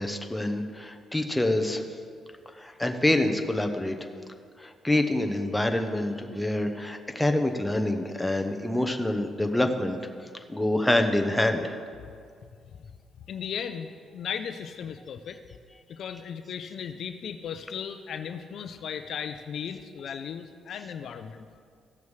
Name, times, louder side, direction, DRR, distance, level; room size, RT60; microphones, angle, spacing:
voice 1, 0.0-1.8 2.5-4.0 4.6-10.0 10.5-11.7, left 1 dB, 10° left, 5 dB, 0.8 m, -26 dB
voice 2, 13.3-15.4 15.9-21.5, left 7 dB, 65° left, 8 dB, 0.5 m, -36 dB
15.5 x 6.9 x 3.3 m, 2.2 s
cardioid pair, 90°, 0 cm